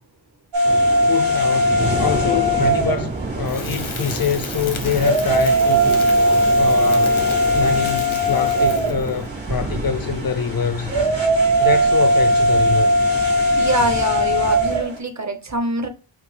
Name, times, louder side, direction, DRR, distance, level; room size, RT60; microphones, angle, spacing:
sound 1, 0.5-15.0, equal, 65° right, 2.0 m, -19 dB
sound 2, 0.6-14.8, right 2 dB, 20° right, 0.3 m, -30 dB
voice 1, 1.1-6.0 6.5-7.2 7.5-10.9 11.6-12.9, left 7 dB, 50° left, 0.4 m, -25 dB
Crackle, 3.5-9.2, left 4 dB, 85° left, 1.0 m, -34 dB
voice 2, 13.6-15.9, right 1 dB, 35° right, 0.7 m, -23 dB
5.0 x 2.6 x 3.2 m
wide cardioid pair, 75°, 47 cm